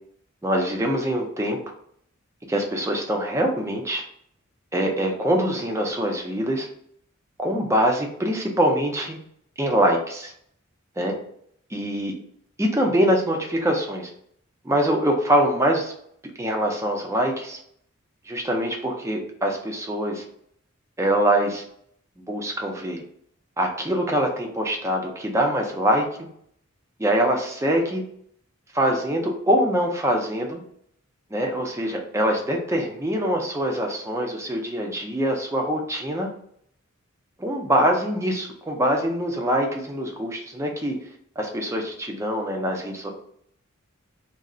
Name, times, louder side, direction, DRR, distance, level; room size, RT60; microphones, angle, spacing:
voice 1, 0.4-1.6 2.5-4.0 4.7-6.7 7.4-9.2 9.6-10.3 11.0-11.1 11.7-12.1 12.6-14.1 14.6-15.9 16.4-17.6 18.3-20.2 21.0-21.6 22.2-23.0 23.6-26.1 27.0-28.0 28.7-30.6 31.3-36.3 37.4-40.9 41.4-43.1, equal, 15° right, 1 dB, 0.4 m, -24 dB
2.4 x 2.0 x 3.6 m, 0.66 s
head